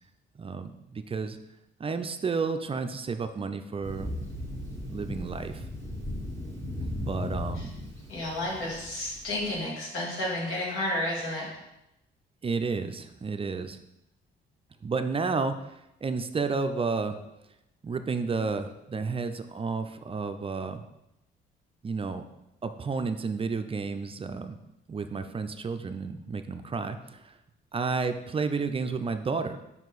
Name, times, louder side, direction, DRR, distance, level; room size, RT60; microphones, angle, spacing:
voice 1, 0.4-1.4 1.8-4.1 4.9-5.6 7.0-7.7 12.4-13.8 14.8-15.7 16.0-17.2 17.8-20.8 21.8-22.2 22.6-24.6 24.9-27.3 27.7-29.6, right 4 dB, 30° right, 9 dB, 0.4 m, -31 dB
Thunder, 3.8-9.5, left 1 dB, 15° left, 1.4 m, -36 dB
voice 2, 8.1-11.5, left 1 dB, 90° left, -4 dB, 2.2 m, -31 dB
5.5 x 4.6 x 4.0 m, 0.88 s
cardioid pair, 90°, 20 cm